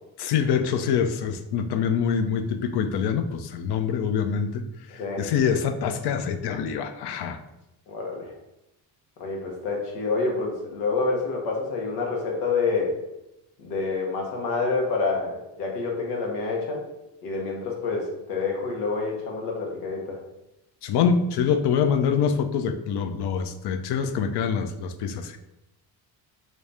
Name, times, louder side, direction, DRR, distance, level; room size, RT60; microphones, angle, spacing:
voice 1, 0.2-4.6 5.2-7.4 20.8-25.4, left 7 dB, 55° left, 8 dB, 0.5 m, -25 dB
voice 2, 4.9-5.3 7.9-8.3 9.2-12.9 13.6-16.8 17.2-20.2, left 4 dB, 90° left, -1 dB, 0.9 m, -28 dB
3.1 x 2.7 x 3.3 m, 0.90 s
supercardioid pair, 65°, 48 cm